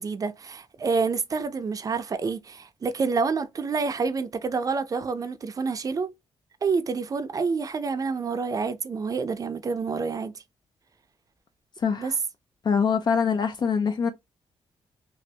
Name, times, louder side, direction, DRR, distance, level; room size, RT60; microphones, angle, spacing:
voice 1, 0.0-6.1 6.6-10.3 12.0-12.1, right 4 dB, 35° right, 0.5 m, -28 dB
voice 2, 11.8-12.1 12.6-14.1, left 6 dB, 45° left, 0.4 m, -24 dB
3.1 x 2.6 x 2.7 m
cardioid pair, 125°, 10 cm